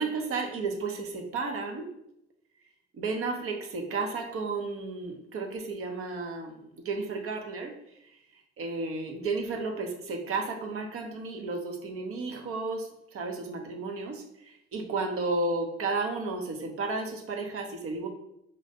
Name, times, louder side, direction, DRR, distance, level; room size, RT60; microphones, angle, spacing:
voice 1, 0.0-1.9 2.9-7.7 8.1-8.2 8.6-18.1, right 3 dB, 40° right, 3 dB, 0.8 m, -33 dB
5.2 x 3.0 x 2.7 m, 0.80 s
figure-of-eight pair, 55°, 35 cm